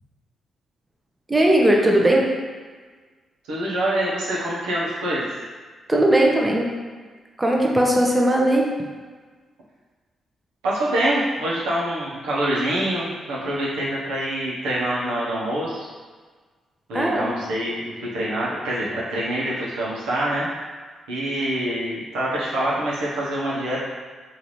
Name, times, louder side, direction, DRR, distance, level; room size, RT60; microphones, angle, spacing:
voice 1, 1.3-2.3 5.9-6.7 7.4-8.7 16.9-17.3, right 1 dB, 20° right, -1 dB, 0.8 m, -18 dB
voice 2, 3.5-5.3 10.6-15.9 16.9-20.5 21.1-23.8, right 1 dB, 90° right, -7 dB, 0.9 m, -25 dB
3.8 x 2.7 x 3.1 m, 1.5 s
supercardioid pair, 50°, 0 cm